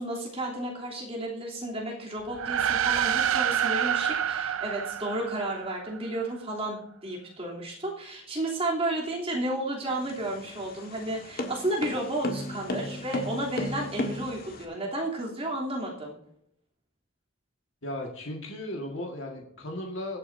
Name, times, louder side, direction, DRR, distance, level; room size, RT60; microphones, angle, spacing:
voice 1, 0.0-16.1, right 1 dB, 30° right, -3 dB, 3.1 m, -32 dB
sound 1, 2.3-6.0, right 9 dB, 80° right, 0.5 m, -27 dB
sound 2, 9.9-14.6, left 1 dB, 45° left, 1.6 m, -34 dB
voice 2, 17.8-20.2, left 1 dB, 65° left, 1 dB, 1.7 m, -36 dB
22.5 x 8.6 x 2.7 m, 0.73 s
head